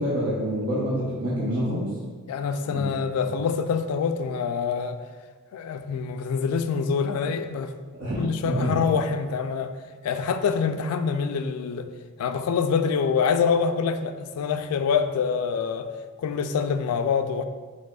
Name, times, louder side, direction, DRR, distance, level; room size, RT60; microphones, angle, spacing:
voice 1, 0.0-1.9 2.6-2.9 7.9-8.7, equal, 75° right, -7 dB, 0.9 m, -27 dB
voice 2, 2.3-5.0 5.5-7.7 8.2-9.7 10.0-11.9 12.2-15.9 16.2-17.4, left 6 dB, 80° left, 9 dB, 0.3 m, -25 dB
4.9 x 4.0 x 2.3 m, 1.4 s
head